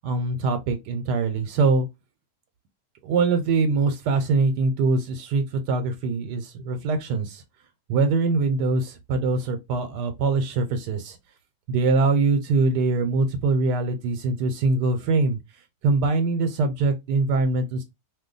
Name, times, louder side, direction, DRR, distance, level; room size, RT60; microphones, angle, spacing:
voice 1, 0.0-1.9 3.0-7.4 7.9-11.2 11.7-15.4 15.8-17.8, right 3 dB, 85° right, 1.2 m, -23 dB
2.7 x 2.2 x 3.7 m
omnidirectional pair, 1.8 m